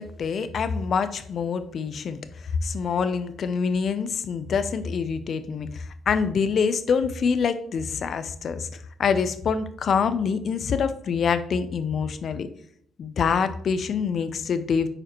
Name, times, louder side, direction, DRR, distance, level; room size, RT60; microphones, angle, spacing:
voice 1, 0.0-8.7 9.0-12.5 13.0-14.9, left 6 dB, 55° left, 12 dB, 0.6 m, -25 dB
8.7 x 4.9 x 3.0 m, 0.66 s
cardioid pair, 90°, 0 cm